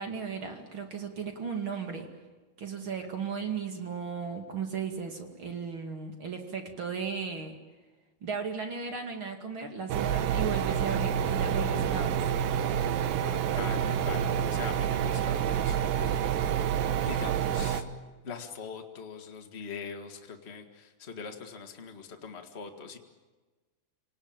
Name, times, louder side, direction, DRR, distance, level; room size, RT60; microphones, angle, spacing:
voice 1, 0.0-2.1 2.6-7.6 8.2-12.2, right 5 dB, 35° right, 4 dB, 2.5 m, -35 dB
sound 1, 9.9-17.8, right 9 dB, 70° right, 2.5 m, -28 dB
voice 2, 13.2-16.6 17.0-17.8 18.2-23.0, left 5 dB, 45° left, 4 dB, 0.8 m, -42 dB
28.5 x 19.0 x 8.9 m, 1.3 s
omnidirectional pair, 4.6 m